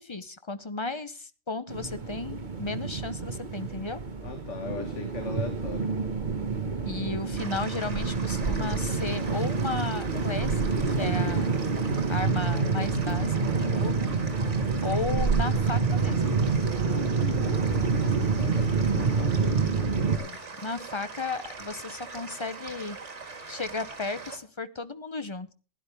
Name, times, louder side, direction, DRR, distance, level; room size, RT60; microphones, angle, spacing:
voice 1, 0.0-4.0 6.9-10.6 10.9-11.5 12.1-14.1 14.8-16.3 20.6-23.0 23.5-25.5, left 3 dB, 25° left, 11 dB, 0.7 m, -34 dB
sound 1, 1.7-20.2, right 4 dB, 35° right, 1.5 m, -27 dB
voice 2, 4.2-5.9 18.0-20.5, left 4 dB, 65° left, 6 dB, 1.8 m, -39 dB
sound 2, 7.4-24.4, right 4 dB, 65° right, 2.3 m, -42 dB
16.0 x 10.5 x 3.4 m, 0.35 s
omnidirectional pair, 1.3 m